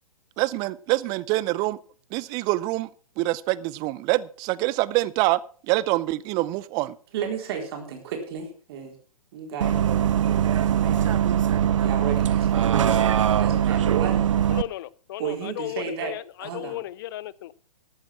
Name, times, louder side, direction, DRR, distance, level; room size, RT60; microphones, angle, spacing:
voice 1, 0.4-1.8 2.1-2.9 3.2-5.4 5.7-7.0, right 19 dB, 20° right, 20 dB, 0.5 m, -25 dB
voice 2, 7.1-9.0 9.3-9.8 10.4-11.2 11.8-14.3 15.2-16.1 16.4-16.8, right 6 dB, 45° right, 3 dB, 4.0 m, -33 dB
Bus, 9.6-14.6, right 10 dB, 60° right, 0.7 m, -21 dB
voice 3, 14.5-17.6, left 14 dB, 40° left, 21 dB, 0.6 m, -35 dB
13.5 x 8.8 x 5.9 m, 0.42 s
figure-of-eight pair, 125°, 18 cm